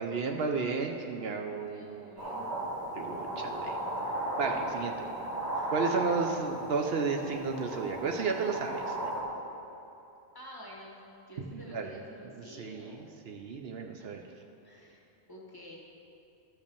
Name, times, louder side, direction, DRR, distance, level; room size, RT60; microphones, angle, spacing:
voice 1, 0.0-2.1 2.9-3.8 4.4-4.9 5.7-9.0 11.5-12.0 12.2-14.2, right 4 dB, 70° right, 4 dB, 0.9 m, -33 dB
voice 2, 1.5-2.5 4.4-4.6 4.8-4.9 5.5-5.7 10.3-13.1 13.8-14.2 14.6-15.8, equal, 20° left, -3 dB, 1.7 m, -50 dB
sound 1, 2.2-9.2, right 1 dB, 35° right, 2.1 m, -35 dB
12.5 x 5.4 x 6.8 m, 2.9 s
omnidirectional pair, 1.1 m